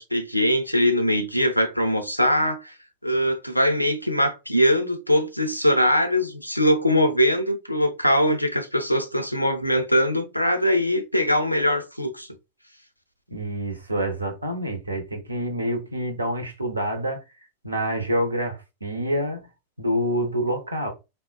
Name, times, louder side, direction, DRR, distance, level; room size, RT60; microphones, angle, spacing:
voice 1, 0.0-2.7 3.0-12.3, equal, 90° left, 0.4 m, -22 dB
voice 2, 13.3-17.2 17.6-19.5 19.8-20.9, equal, 80° right, 0.6 m, -27 dB
3.6 x 2.1 x 2.2 m
figure-of-eight pair, 90°, 0 cm